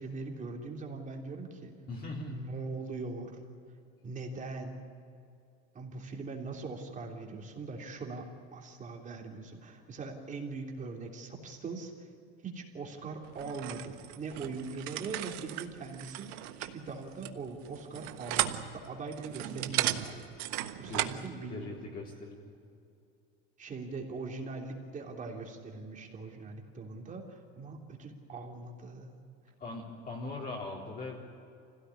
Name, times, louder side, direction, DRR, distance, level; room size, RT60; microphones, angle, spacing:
voice 1, 0.0-1.7 2.3-3.4 4.0-4.8 5.7-8.3 8.5-12.1 12.4-20.3 20.5-21.8 23.6-29.1, right 3 dB, 25° right, 1 dB, 3.3 m, -41 dB
voice 2, 1.9-2.4 20.8-21.2 21.5-22.5 29.6-31.4, left 3 dB, 30° left, -3 dB, 3.7 m, -40 dB
sound 1, 13.4-21.3, right 15 dB, 80° right, 1.4 m, -36 dB
26.0 x 17.0 x 9.8 m, 2.5 s
cardioid pair, 155°, 30 cm